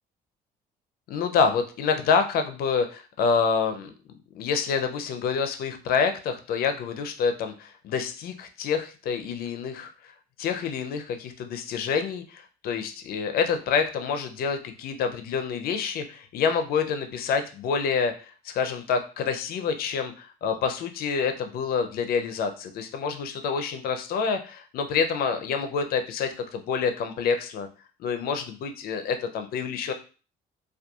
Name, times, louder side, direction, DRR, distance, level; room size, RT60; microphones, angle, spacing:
voice 1, 1.1-3.9 4.3-10.1 10.4-27.7 28.0-29.9, left 6 dB, 65° left, 7 dB, 0.4 m, -27 dB
2.7 x 2.3 x 2.3 m, 0.36 s
cardioid pair, 110°, 17 cm